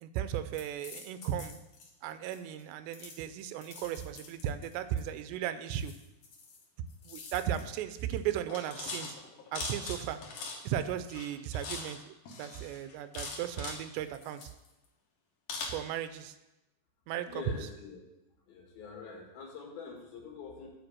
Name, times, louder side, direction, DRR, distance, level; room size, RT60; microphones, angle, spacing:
voice 1, 0.0-1.6 2.0-5.9 7.0-9.2 9.5-10.2 10.6-14.5 15.6-16.4 17.1-17.4, right 10 dB, 85° right, 11 dB, 2.8 m, -36 dB
sound 1, 0.5-1.9 2.3-2.6 2.9-5.0 5.7-6.6 6.9-7.7 8.0-8.2 8.5-10.8 11.1-12.0 12.3-13.8 14.1-14.9 15.5-15.7, left 4 dB, 80° left, 1.4 m, -43 dB
voice 2, 17.3-18.0 18.5-20.7, left 5 dB, 65° left, 0 dB, 3.1 m, -45 dB
7.8 x 5.2 x 7.4 m, 0.95 s
omnidirectional pair, 4.9 m